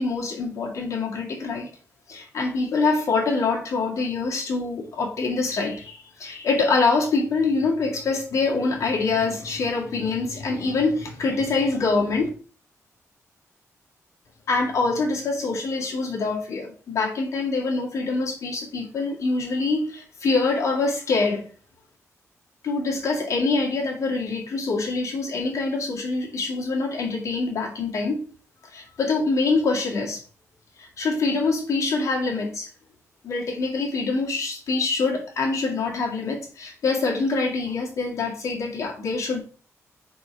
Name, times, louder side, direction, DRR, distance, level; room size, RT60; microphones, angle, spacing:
voice 1, 0.0-1.7 2.1-12.3 14.5-21.4 22.6-28.2 28.7-30.2 30.8-32.7 33.2-39.4, left 3 dB, 65° left, 2.0 m, -25 dB
4.7 x 4.3 x 5.6 m
wide cardioid pair, 140°, 6 cm